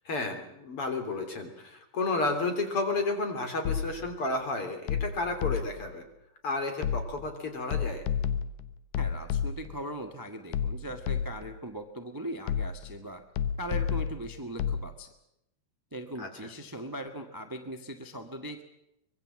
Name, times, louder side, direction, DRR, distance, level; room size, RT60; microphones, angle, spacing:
voice 1, 0.1-6.0 6.4-8.0 16.2-16.3, left 3 dB, 40° left, 6 dB, 4.1 m, -32 dB
sound 1, 3.7-4.2 4.9-5.9 6.8-7.3 7.7-9.8 10.5-11.6 12.5-13.0 13.4-14.9, left 8 dB, 80° left, 2.6 m, -31 dB
voice 2, 9.0-13.2 13.6-15.1 15.9-18.6, right 1 dB, 15° right, 6 dB, 0.6 m, -39 dB
24.5 x 21.5 x 7.7 m, 0.81 s
omnidirectional pair, 3.8 m